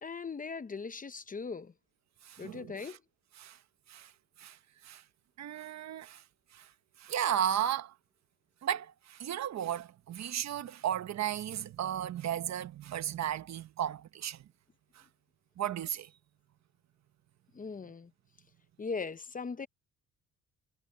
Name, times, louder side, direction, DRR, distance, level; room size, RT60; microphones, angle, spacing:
voice 1, 0.0-1.7 2.4-3.0 17.5-18.1 18.8-19.7, left 4 dB, 25° left, 0.8 m, -39 dB
voice 2, 2.2-3.0 3.4-3.6 3.9-4.1 4.4-4.6 4.8-5.0 5.4-6.2 6.5-6.7 7.0-7.9 8.6-14.5 15.6-16.1, right 10 dB, 60° right, 1.2 m, -34 dB
cardioid pair, 90°, 30 cm